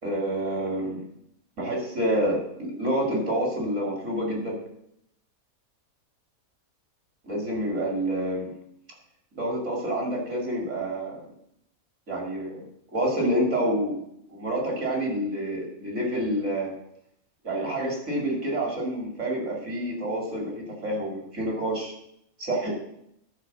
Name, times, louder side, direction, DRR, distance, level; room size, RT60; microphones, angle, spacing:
voice 1, 0.0-1.0 1.6-4.6 7.2-8.5 9.3-11.2 12.1-12.6 12.9-14.0 14.3-16.7 17.4-21.9 22.4-22.7, right 1 dB, 55° right, -2 dB, 2.9 m, -28 dB
12.0 x 4.8 x 6.0 m, 0.76 s
omnidirectional pair, 1.5 m